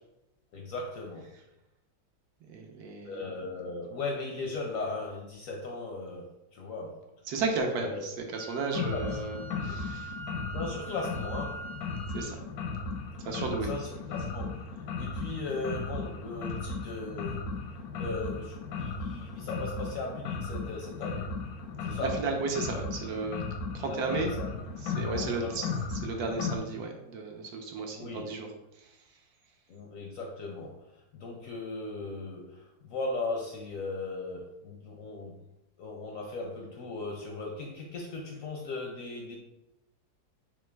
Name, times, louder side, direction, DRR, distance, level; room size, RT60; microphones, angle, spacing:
voice 1, 0.5-1.3 3.0-7.1 7.8-8.2 8.9-9.2 9.5-9.8 10.5-11.7 13.6-17.4 18.0-21.3 21.8-22.2 23.8-24.6 25.0-25.7 28.0-28.3 29.7-35.4 35.8-39.4, left 3 dB, 70° left, 0 dB, 0.8 m, -38 dB
voice 2, 2.5-3.2 7.3-10.1 12.1-12.4 13.2-13.7 22.0-23.4 23.7-24.3 24.8-25.7 26.0-28.5 28.8-28.9, right 3 dB, 70° right, 3 dB, 1.0 m, -33 dB
Wind instrument woodwind instrument, 8.3-12.3, right 2 dB, 85° right, 1.3 m, -44 dB
sound 1, 8.7-26.6, left 4 dB, 85° left, 1.2 m, -36 dB
3.7 x 3.0 x 3.2 m, 0.90 s
omnidirectional pair, 1.8 m